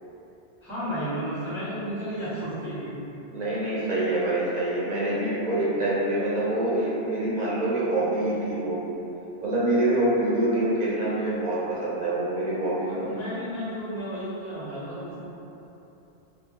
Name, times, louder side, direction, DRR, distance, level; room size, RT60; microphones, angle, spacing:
voice 1, 0.6-2.9 12.8-15.2, equal, 25° left, -12 dB, 1.1 m, -33 dB
voice 2, 3.3-8.8 9.4-13.1, right 1 dB, 60° right, -6 dB, 0.5 m, -25 dB
2.6 x 2.5 x 2.8 m, 3.0 s
omnidirectional pair, 1.2 m